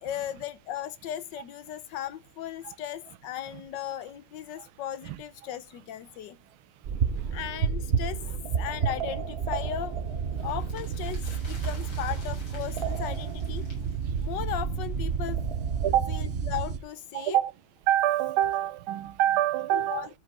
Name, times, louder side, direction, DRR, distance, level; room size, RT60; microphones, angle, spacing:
voice 1, 0.0-6.4 7.3-8.2 8.6-10.0 10.4-13.7 14.2-15.4 16.1-17.4 19.7-20.1, left 11 dB, 65° left, 1.3 m, -36 dB
sound 1, 6.8-16.8, right 6 dB, 75° right, 0.5 m, -30 dB
voice 2, 6.8-7.4 8.3-8.4 10.4-10.5 11.6-11.7 14.1-14.3 15.8-16.2 17.1-17.5 17.9-20.1, right 12 dB, 90° right, 1.5 m, -27 dB
sound 2, 9.6-15.0 15.3-15.4, left 2 dB, 80° left, 5.2 m, -51 dB
13.0 x 5.1 x 4.5 m
omnidirectional pair, 2.2 m